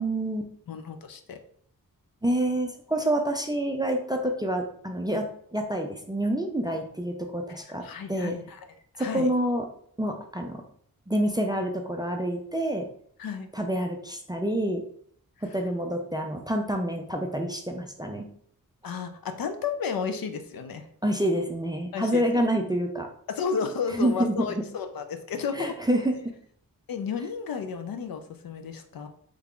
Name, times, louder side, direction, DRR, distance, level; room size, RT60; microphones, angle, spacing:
voice 1, 0.0-0.5 2.2-5.2 5.5-8.3 9.0-9.6 10.0-10.6 11.1-12.9 13.5-14.8 15.5-18.2 21.0-23.1 23.9-24.5 25.5-26.3, right 1 dB, 10° right, 3 dB, 0.3 m, -27 dB
voice 2, 0.7-1.4 7.8-8.7 9.0-9.3 13.2-13.5 18.8-20.9 21.9-22.4 23.3-25.7 26.9-29.1, left 6 dB, 75° left, 7 dB, 0.5 m, -32 dB
3.3 x 2.4 x 3.5 m, 0.62 s
wide cardioid pair, 110°, 36 cm